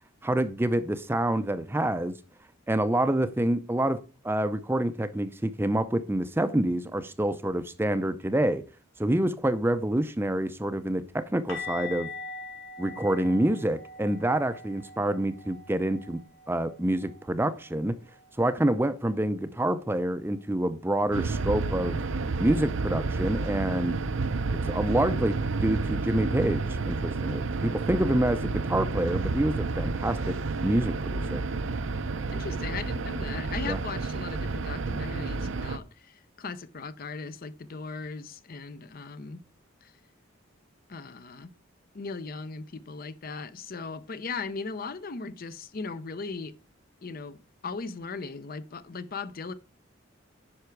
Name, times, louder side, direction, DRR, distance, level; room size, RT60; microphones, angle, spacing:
voice 1, 0.2-2.2 2.7-8.6 9.0-12.1 12.8-16.2 16.5-18.0 18.4-22.0 22.4-23.9 24.6-30.4 30.6-31.4 33.6-33.8, right 1 dB, 10° right, 0.5 m, -27 dB
sound 1, 11.5-17.3 17.5-17.8 18.1-18.3 21.5-21.6, left 4 dB, 85° left, 3.7 m, -42 dB
sound 2, 21.1-35.8, right 3 dB, 70° right, 0.6 m, -30 dB
voice 2, 32.3-39.4 39.8-39.9 40.9-41.5 41.9-46.6 47.0-49.5, left 4 dB, 45° left, 0.6 m, -38 dB
9.8 x 5.8 x 4.6 m
head